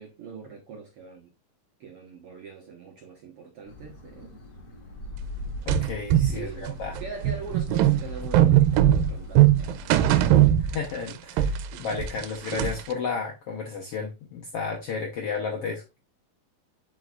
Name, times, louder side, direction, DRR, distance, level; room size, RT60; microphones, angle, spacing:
voice 1, 0.0-1.3 1.8-4.4 6.3-9.9 11.7-11.9, right 5 dB, 65° right, 1.5 m, -42 dB
sound 1, 3.6-10.2, left 1 dB, 35° left, 2.6 m, -40 dB
voice 2, 5.7-7.0 10.7-15.8, left 5 dB, 70° left, 1.4 m, -32 dB
sound 2, 5.7-11.1 11.4-12.9, right 12 dB, 85° right, 2.3 m, -20 dB
7.8 x 5.4 x 2.4 m
omnidirectional pair, 4.0 m